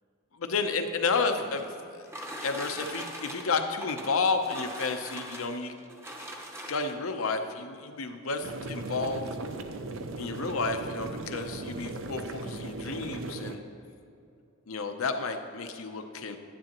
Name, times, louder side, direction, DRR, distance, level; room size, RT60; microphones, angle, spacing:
voice 1, 0.3-1.7 1.9-2.1 2.4-5.7 6.7-9.2 10.2-13.6 14.7-16.4, left 4 dB, 80° left, 6 dB, 0.7 m, -31 dB
sound 1, 0.9-7.1 8.0-8.1 8.5-8.6 8.9-9.3, right 1 dB, 10° right, 0.7 m, -41 dB
sound 2, 8.4-13.6, right 2 dB, 65° right, 0.6 m, -37 dB
10.5 x 10.0 x 3.0 m, 2.6 s
head